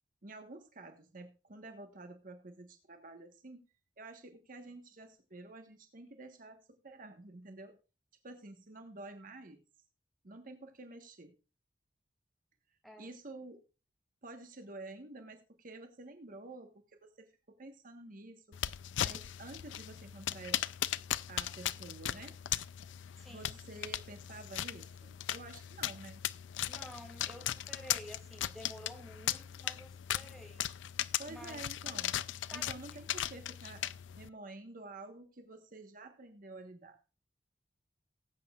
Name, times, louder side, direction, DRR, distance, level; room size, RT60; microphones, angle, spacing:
voice 1, 0.2-3.6 4.0-7.8 8.2-9.6 10.2-11.4 13.0-13.6 14.2-18.6 19.0-20.6 21.3-22.4 23.3-26.2 31.2-32.2 32.5-33.9 34.1-37.0, right 2 dB, 50° right, 6 dB, 1.3 m, -50 dB
sound 1, 18.5-34.3, left 12 dB, 85° left, 0.4 m, -38 dB
voice 2, 23.2-23.6 26.7-30.7 31.3-31.6 32.5-32.8, equal, ahead, 2 dB, 2.5 m, -51 dB
18.5 x 8.6 x 2.4 m, 0.32 s
head